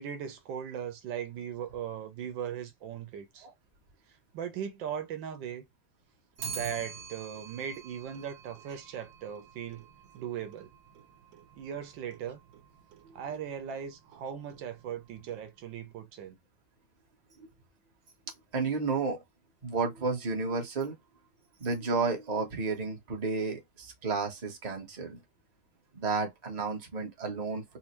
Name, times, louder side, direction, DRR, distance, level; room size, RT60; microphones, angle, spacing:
voice 1, 0.0-3.5 4.3-5.6 6.5-9.9 10.1-10.7 11.6-12.4 13.1-16.4, right 8 dB, 80° right, 1.4 m, -38 dB
Clock, 6.4-15.8, right 6 dB, 65° right, 1.1 m, -47 dB
voice 2, 18.5-19.2 19.6-20.9 21.6-25.2 25.9-27.8, right 4 dB, 30° right, 0.7 m, -32 dB
4.3 x 2.1 x 2.9 m
omnidirectional pair, 2.1 m